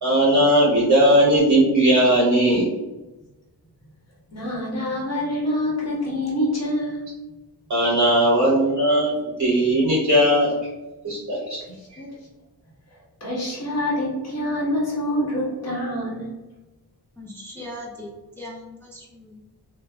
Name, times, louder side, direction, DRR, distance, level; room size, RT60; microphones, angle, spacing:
voice 1, 0.0-2.7 7.7-9.1 9.4-10.5 11.0-11.6, right 1 dB, 50° right, -7 dB, 0.7 m, -18 dB
voice 2, 4.3-7.0 11.7-12.1 13.2-16.3, left 1 dB, 40° left, -5 dB, 1.1 m, -26 dB
voice 3, 17.2-18.1 18.4-19.4, left 1 dB, 5° left, -3 dB, 0.4 m, -39 dB
3.2 x 2.2 x 2.2 m, 1.1 s
wide cardioid pair, 85°, 40 cm